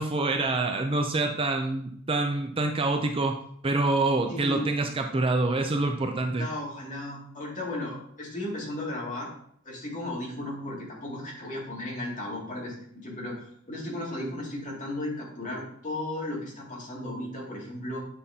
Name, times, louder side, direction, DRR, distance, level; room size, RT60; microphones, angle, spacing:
voice 1, 0.0-3.4 3.6-6.5, right 2 dB, 25° right, 4 dB, 0.5 m, -26 dB
voice 2, 4.3-4.9 6.4-9.3 9.6-18.0, left 1 dB, 35° left, -4 dB, 2.3 m, -35 dB
8.5 x 5.7 x 2.7 m, 0.67 s
head